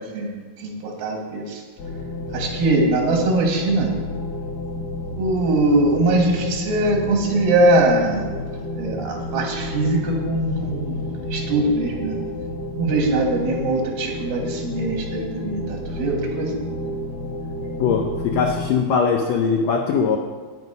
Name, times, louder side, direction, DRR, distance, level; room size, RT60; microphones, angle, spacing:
voice 1, 0.6-1.6 2.3-3.9 5.2-8.3 8.8-12.2 12.8-16.5, right 2 dB, 90° right, 1 dB, 3.4 m, -21 dB
sound 1, 1.8-18.7, left 2 dB, 75° left, 3.0 m, -30 dB
voice 2, 17.8-20.2, left 5 dB, 90° left, 3 dB, 1.5 m, -20 dB
9.2 x 8.3 x 5.4 m, 1.5 s
omnidirectional pair, 4.0 m